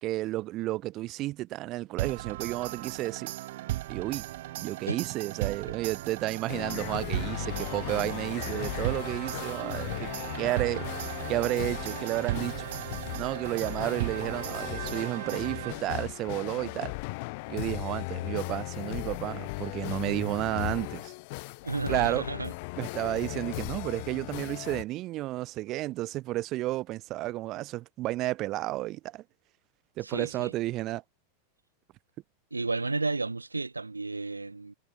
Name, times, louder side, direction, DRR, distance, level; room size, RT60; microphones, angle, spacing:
voice 1, 0.0-3.3 3.9-4.3 4.6-10.1 10.3-10.9 11.3-12.7 13.2-16.9 17.5-21.1 21.9-22.2 22.8-29.2 30.0-31.0, right 17 dB, 35° right, 1.7 m, -32 dB
sound 1, 2.0-16.1, right 16 dB, 55° right, 4.8 m, -37 dB
sound 2, 6.5-24.8, left 28 dB, 45° left, 1.7 m, -37 dB
voice 2, 21.6-22.5 30.0-30.5 32.5-34.7, right 3 dB, 80° right, 3.4 m, -32 dB
figure-of-eight pair, 90°, 0 cm